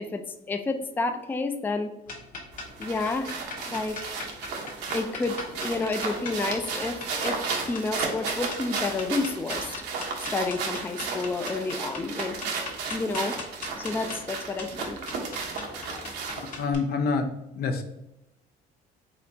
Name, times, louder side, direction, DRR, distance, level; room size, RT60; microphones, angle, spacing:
voice 1, 0.0-1.9 2.8-3.3 3.7-4.2 4.9-7.4 7.7-9.7 10.2-12.4 12.9-13.4 13.8-15.0, left 3 dB, 10° left, 7 dB, 0.3 m, -30 dB
sound 1, 2.1-16.7, left 3 dB, 50° left, 1.3 m, -40 dB
sound 2, 2.5-16.6, right 4 dB, 85° right, 1.0 m, -34 dB
voice 2, 16.4-17.3 17.6-17.8, left 4 dB, 70° left, 7 dB, 0.6 m, -27 dB
4.3 x 3.8 x 2.7 m, 0.91 s
cardioid pair, 110°, 17 cm